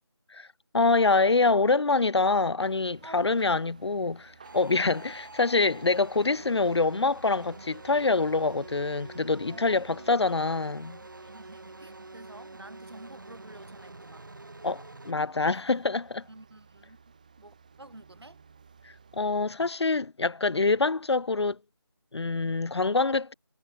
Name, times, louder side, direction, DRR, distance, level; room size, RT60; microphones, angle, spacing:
voice 1, 0.7-11.0 14.6-16.2 18.8-21.6 22.1-23.3, left 3 dB, 90° left, 0.5 m, -25 dB
sound 1, 2.6-19.4, right 5 dB, 20° right, 6.1 m, -56 dB
voice 2, 3.0-3.6 9.5-10.1 11.2-14.3 16.3-17.0 17.4-18.4, right 2 dB, 75° right, 3.9 m, -49 dB
sound 2, 4.4-15.1, right 2 dB, 50° right, 3.5 m, -47 dB
figure-of-eight pair, 175°, 14 cm